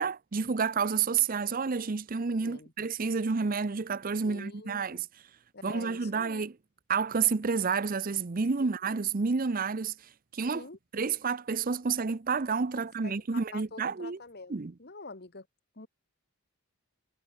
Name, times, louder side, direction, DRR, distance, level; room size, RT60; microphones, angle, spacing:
voice 1, 0.0-5.1 5.6-6.5 6.9-9.9 10.3-10.6 10.9-14.2 14.5-14.7, right 5 dB, 40° right, 0.6 m, -29 dB
voice 2, 4.2-5.0 5.5-6.4 8.6-9.0 10.5-10.8 13.0-13.2 13.5-15.5 15.7-15.9, left 3 dB, 45° left, 1.5 m, -46 dB
head